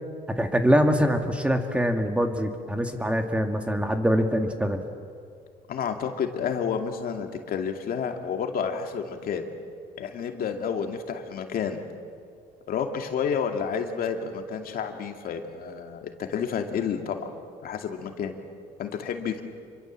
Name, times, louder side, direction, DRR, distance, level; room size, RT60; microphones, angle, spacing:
voice 1, 0.4-4.8, equal, 5° right, 5 dB, 2.0 m, -24 dB
voice 2, 5.7-9.5 10.0-11.8 12.7-17.3 17.6-18.4 18.8-19.4, left 7 dB, 60° left, 4 dB, 2.4 m, -30 dB
27.0 x 23.5 x 7.5 m, 2.2 s
cardioid pair, 110°, 17 cm